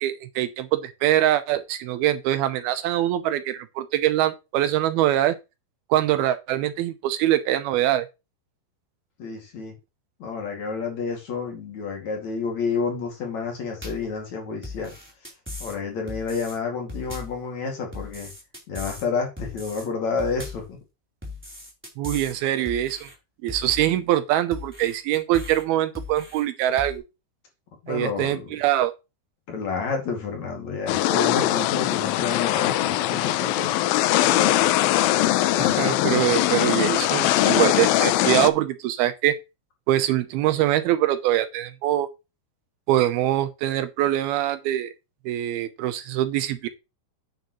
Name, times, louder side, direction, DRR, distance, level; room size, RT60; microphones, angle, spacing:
voice 1, 0.0-5.4 5.9-8.1 22.0-23.1 23.4-27.0 27.9-28.9 35.6-39.4 39.9-42.1 42.9-44.9 45.3-46.7, right 13 dB, 80° right, 2.6 m, -23 dB
voice 2, 9.2-9.8 10.2-14.9 15.6-18.3 18.7-20.8 27.8-28.5 29.5-33.9, left 5 dB, 50° left, 3.3 m, -29 dB
sound 1, 13.8-14.1 14.6-15.8 16.1-16.6 16.9-17.4 17.9-19.1 19.4-19.9 20.2-20.7 21.2-22.4 22.7-23.1 23.5-24.0 24.5-25.6 26.0-26.4 26.8-27.0, left 2 dB, 5° right, 3.0 m, -38 dB
sound 2, 30.9-38.5, left 14 dB, 80° left, 2.2 m, -21 dB
9.2 x 9.2 x 3.1 m
omnidirectional pair, 4.6 m